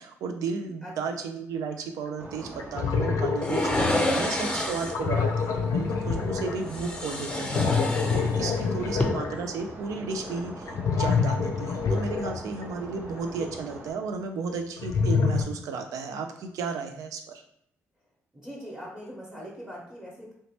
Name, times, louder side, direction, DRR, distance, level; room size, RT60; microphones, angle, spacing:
voice 1, 0.0-17.4, right 5 dB, 75° right, 6 dB, 0.4 m, -34 dB
voice 2, 0.8-1.2 4.4-4.7 6.5-6.6 8.7-9.1 18.3-20.3, equal, 10° right, -4 dB, 0.9 m, -42 dB
sound 1, 2.1-2.2 2.6-13.2 14.5-15.4, left 5 dB, 65° left, 0.4 m, -27 dB
sound 2, 2.2-13.9, right 2 dB, 30° right, 0.6 m, -42 dB
sound 3, 3.4-5.1 6.7-8.6 8.9-9.1, left 1 dB, 15° left, 0.6 m, -28 dB
2.8 x 2.1 x 2.9 m, 0.71 s
supercardioid pair, 50°, 6 cm